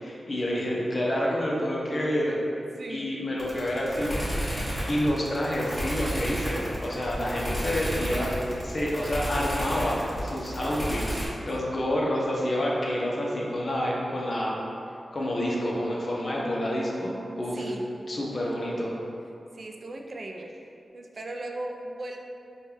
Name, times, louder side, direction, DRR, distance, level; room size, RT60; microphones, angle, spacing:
voice 1, 0.0-2.4 2.9-4.3 4.9-8.3 8.6-11.2 11.5-14.5 15.1-17.7 18.1-18.9, equal, 55° left, -4 dB, 0.7 m, -28 dB
voice 2, 2.8-3.1 11.3-11.4 17.5-17.9 18.4-18.6 19.5-20.6 20.9-22.2, right 2 dB, 55° right, 2 dB, 0.3 m, -38 dB
sound 1, 3.4-11.3, equal, 5° left, 1.4 m, -31 dB
4.3 x 2.3 x 3.4 m, 2.6 s
cardioid pair, 55°, 0 cm